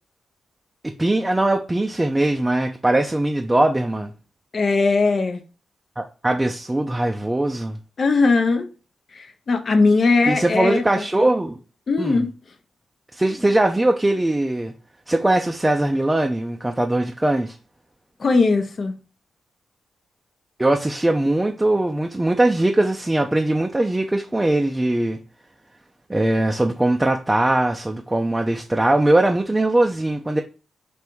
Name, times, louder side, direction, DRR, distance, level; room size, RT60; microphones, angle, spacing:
voice 1, 1.0-4.1 6.0-7.8 10.3-11.6 12.0-12.2 13.1-14.7 15.1-17.6 20.6-25.2 26.1-30.4, right 1 dB, 20° right, 0.4 m, -20 dB
voice 2, 4.5-5.4 8.0-8.7 9.1-10.8 11.9-12.3 18.2-19.0, left 3 dB, 55° left, 0.6 m, -19 dB
3.4 x 2.6 x 4.4 m
supercardioid pair, 50°, 0 cm